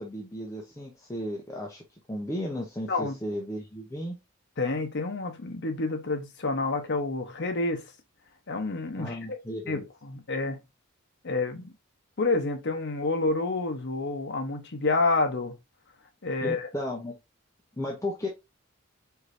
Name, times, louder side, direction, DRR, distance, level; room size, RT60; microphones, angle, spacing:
voice 1, 0.0-4.2 9.0-9.8 16.4-17.1 17.8-18.3, left 1 dB, 15° left, 0.7 m, -34 dB
voice 2, 4.6-7.8 8.5-9.4 9.7-10.6 11.2-11.7 12.2-15.5 16.2-16.7, left 3 dB, 55° left, 0.9 m, -28 dB
4.5 x 3.2 x 2.6 m
head